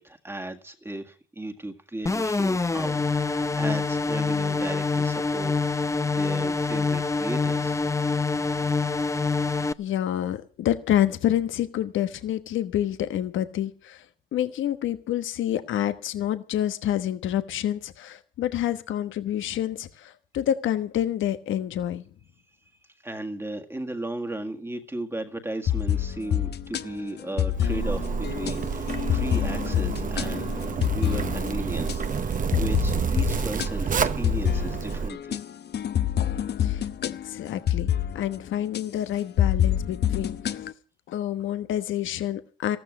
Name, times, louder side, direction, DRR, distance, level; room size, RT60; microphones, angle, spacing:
voice 1, 0.0-5.7 6.0-7.9 22.8-35.4, right 1 dB, 10° right, 4 dB, 1.8 m, -36 dB
sound 1, 2.1-9.7, left 4 dB, 15° left, 0.6 m, -25 dB
voice 2, 9.8-14.0 14.3-22.0 36.6-40.6 41.1-42.8, left 11 dB, 75° left, 11 dB, 1.2 m, -28 dB
sound 2, 25.7-32.0 32.5-38.4 38.7-38.8 39.4-40.7, left 10 dB, 55° left, 0.9 m, -27 dB
Zipper (clothing), 27.6-35.1, right 6 dB, 45° right, 1.1 m, -29 dB
14.0 x 12.5 x 6.2 m, 0.39 s
cardioid pair, 90°, 20 cm